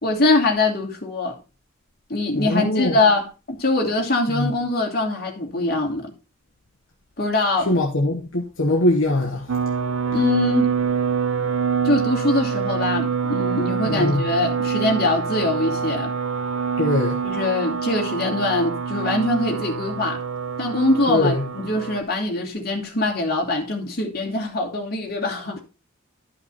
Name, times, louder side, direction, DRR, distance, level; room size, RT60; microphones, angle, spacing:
voice 1, 0.0-1.4 2.1-6.1 7.2-7.7 10.1-10.7 11.8-16.1 17.2-20.2 20.6-25.6, left 2 dB, 45° left, 2.9 m, -23 dB
voice 2, 2.3-3.0 4.3-4.5 7.6-9.6 13.8-14.2 16.8-17.2 21.1-21.4, left 1 dB, 65° left, 1.3 m, -22 dB
sound 1, 9.5-22.0, right 6 dB, 85° right, 0.7 m, -25 dB
12.5 x 5.8 x 4.3 m
head